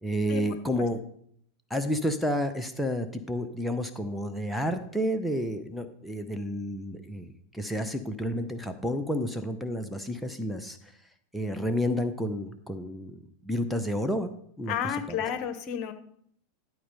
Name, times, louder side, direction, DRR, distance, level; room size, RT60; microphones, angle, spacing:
voice 1, 0.0-1.0 1.7-10.8 11.3-13.2 13.4-14.3 14.6-14.7 15.1-15.2, equal, ahead, 5 dB, 0.9 m, -30 dB
voice 2, 14.7-15.9, left 8 dB, 45° left, 9 dB, 1.1 m, -31 dB
11.5 x 4.5 x 5.4 m, 0.67 s
figure-of-eight pair, 90°, 0 cm